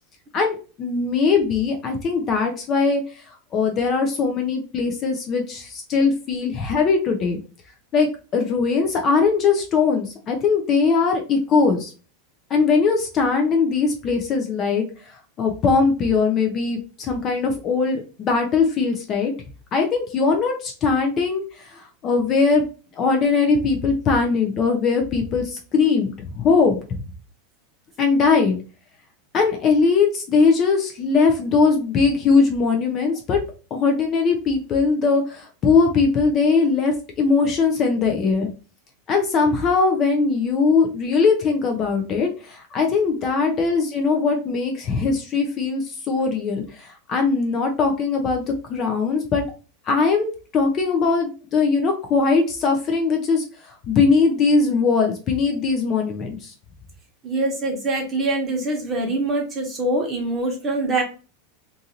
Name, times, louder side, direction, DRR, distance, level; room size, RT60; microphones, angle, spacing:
voice 1, 0.3-3.0 3.5-7.4 7.9-11.9 12.5-14.8 15.4-19.3 19.7-22.7 23.0-26.8 28.0-28.6 29.3-33.4 33.7-38.5 39.1-48.4 48.7-49.4 49.9-56.5, left 4 dB, 30° left, 3 dB, 0.5 m, -20 dB
voice 2, 57.2-61.0, right 2 dB, 20° right, 0 dB, 1.0 m, -24 dB
2.6 x 2.5 x 2.8 m, 0.35 s
supercardioid pair, 145°, 0 cm